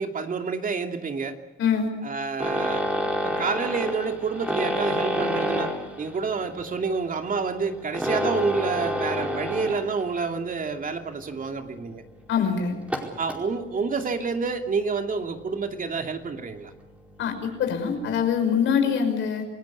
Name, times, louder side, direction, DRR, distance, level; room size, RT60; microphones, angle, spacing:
voice 1, 0.0-1.4 2.0-2.8 3.2-5.7 6.0-12.0 13.2-16.7, right 4 dB, 45° right, 5 dB, 2.7 m, -28 dB
voice 2, 1.6-1.9 12.3-12.8 17.2-19.5, left 7 dB, 75° left, 5 dB, 5.8 m, -24 dB
sound 1, 2.4-10.2 10.5-10.8 11.3-11.4 11.7-11.8 12.8-13.4 14.7-14.9 15.3-15.7 16.4-16.5 16.8-16.9 17.1-17.2, equal, 5° right, 4.8 m, -28 dB
28.0 x 17.0 x 8.4 m, 1.0 s
cardioid pair, 90°, 20 cm